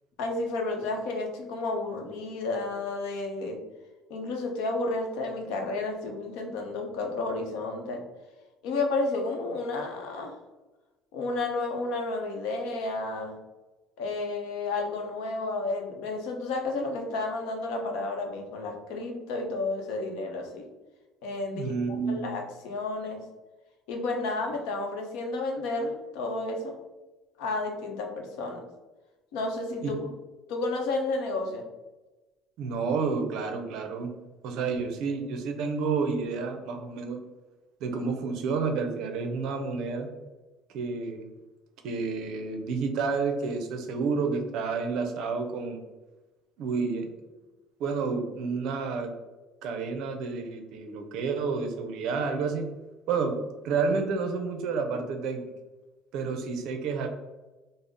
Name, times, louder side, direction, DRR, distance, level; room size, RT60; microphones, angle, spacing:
voice 1, 0.2-3.6 4.1-8.0 8.6-10.4 11.1-13.4 14.0-20.6 21.2-23.2 23.9-26.8 27.4-28.6 29.3-30.0 30.5-31.6, left 2 dB, 75° left, 2 dB, 0.7 m, -31 dB
voice 2, 21.5-22.3 29.8-30.0 32.6-34.1 34.4-37.2 37.8-40.1 40.7-41.3 41.8-45.8 46.6-47.1 47.8-49.1 49.6-52.7 53.1-55.5 56.1-57.1, right 4 dB, 55° right, 4 dB, 0.5 m, -30 dB
3.8 x 2.0 x 3.5 m, 1.1 s
cardioid pair, 175°, 0 cm